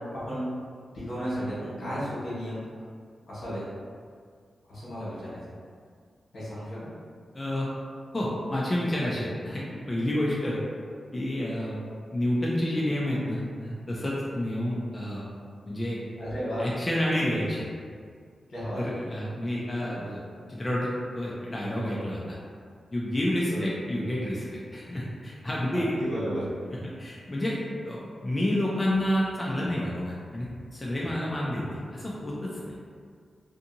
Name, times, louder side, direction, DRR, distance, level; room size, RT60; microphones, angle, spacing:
voice 1, 0.9-2.6 3.3-3.6 4.7-5.4 6.3-6.9 16.2-16.6 18.5-18.8 23.5-23.6 25.7-26.5, equal, 75° left, -10 dB, 1.2 m, -33 dB
voice 2, 7.3-7.7 8.1-10.6 11.1-11.8 12.1-15.2 15.7-16.0 16.6-17.7 18.8-20.2 20.5-22.4 22.9-24.4 24.7-26.0 26.7-27.6 27.8-30.5 30.7-31.6 31.9-32.7, left 1 dB, 20° left, -6 dB, 0.3 m, -29 dB
2.6 x 2.6 x 2.7 m, 2.1 s
wide cardioid pair, 175°, 0 cm